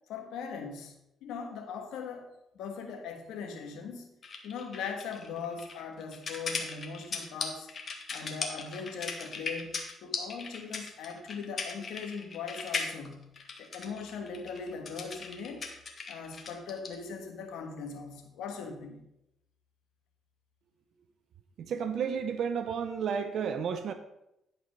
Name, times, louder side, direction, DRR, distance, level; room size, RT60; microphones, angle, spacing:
voice 1, 0.1-0.9 1.2-4.1 4.4-7.7 8.1-13.3 13.6-15.7 16.1-19.0, left 5 dB, 90° left, 4 dB, 1.4 m, -40 dB
sound 1, 4.2-17.0, left 4 dB, 45° left, 1.6 m, -38 dB
voice 2, 21.6-23.9, right 7 dB, 70° right, 9 dB, 0.6 m, -32 dB
11.0 x 4.7 x 5.2 m, 0.86 s
cardioid pair, 90°, 0 cm